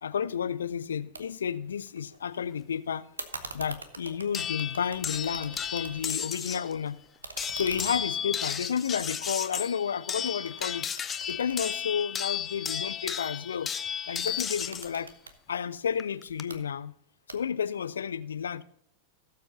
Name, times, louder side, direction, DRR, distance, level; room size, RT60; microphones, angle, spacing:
voice 1, 0.0-3.1 3.3-7.0 7.5-10.9 11.3-13.7 14.1-15.1 15.5-16.9 17.3-18.6, left 7 dB, 70° left, 0.3 m, -31 dB
sound 1, 1.1-1.2 1.5-2.4 3.2-6.2 6.6-9.8 10.3-12.5 14.1-15.4 16.3-16.6 17.3-17.7, right 3 dB, 75° right, 0.9 m, -44 dB
sound 2, 4.3-6.7 7.4-14.9 16.0-16.4, left 8 dB, 20° left, 0.6 m, -34 dB
17.0 x 7.4 x 2.7 m
figure-of-eight pair, 90°, 0 cm